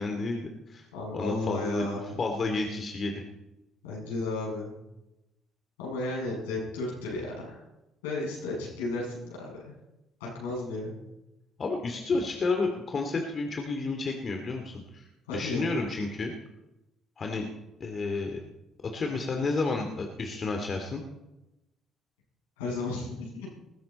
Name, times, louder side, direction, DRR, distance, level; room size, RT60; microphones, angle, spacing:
voice 1, 0.0-0.9 1.1-3.2 11.6-16.3 17.2-17.5 17.8-18.4 18.8-21.0, left 3 dB, 45° left, 3 dB, 2.5 m, -31 dB
voice 2, 0.9-2.1 3.8-4.7 5.8-7.6 8.0-9.7 10.2-11.0 15.3-15.7 22.6-23.5, left 2 dB, 80° left, -4 dB, 7.5 m, -34 dB
20.5 x 15.5 x 4.3 m, 0.97 s
hypercardioid pair, 50°, 0 cm